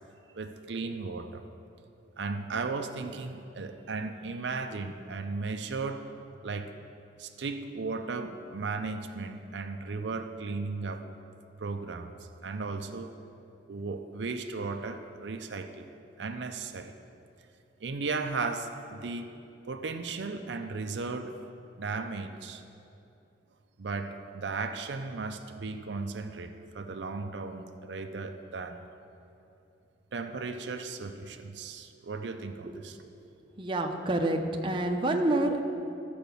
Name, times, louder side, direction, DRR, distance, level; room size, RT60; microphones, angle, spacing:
voice 1, 0.3-1.4 2.2-6.1 6.4-6.8 7.2-11.0 11.6-13.1 13.7-15.9 16.2-16.9 17.8-19.3 19.7-21.5 21.8-22.6 23.8-28.9 30.1-33.0, right 4 dB, 75° right, 6 dB, 0.6 m, -36 dB
voice 2, 33.6-35.6, right 1 dB, 30° right, 2 dB, 0.7 m, -27 dB
14.0 x 5.0 x 6.8 m, 2.7 s
head